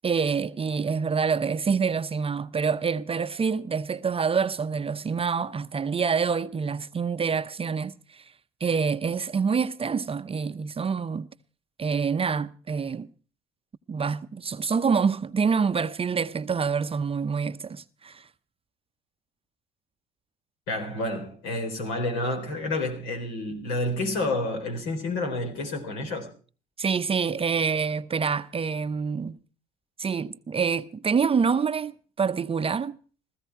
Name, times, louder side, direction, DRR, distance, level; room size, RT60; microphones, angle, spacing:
voice 1, 0.0-8.2 8.6-11.3 11.8-13.1 13.9-18.3 26.8-29.4 30.0-33.0, right 5 dB, 25° right, 0.7 m, -26 dB
voice 2, 20.7-26.3, left 2 dB, 75° left, 4.0 m, -29 dB
16.0 x 15.0 x 4.7 m
hypercardioid pair, 65°, 21 cm